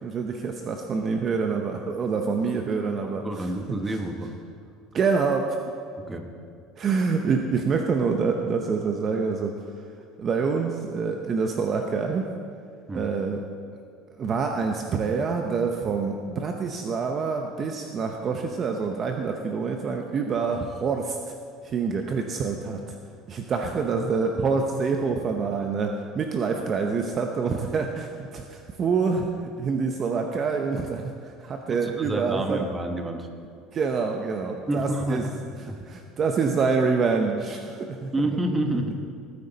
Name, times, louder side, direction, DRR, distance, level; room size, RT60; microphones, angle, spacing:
voice 1, 0.0-3.5 3.9-4.0 4.9-5.6 6.8-9.5 10.2-12.3 12.9-13.4 14.2-21.3 21.6-23.0 23.3-29.3 29.6-32.7 33.7-35.3 35.9-38.1, right 5 dB, 35° right, 4 dB, 0.8 m, -26 dB
voice 2, 3.0-4.4 6.0-6.3 12.9-13.1 31.7-33.3 34.7-35.3 35.6-35.8 38.1-39.0, right 1 dB, 15° right, 4 dB, 1.1 m, -29 dB
19.5 x 9.7 x 4.1 m, 2.2 s
cardioid pair, 140°, 0 cm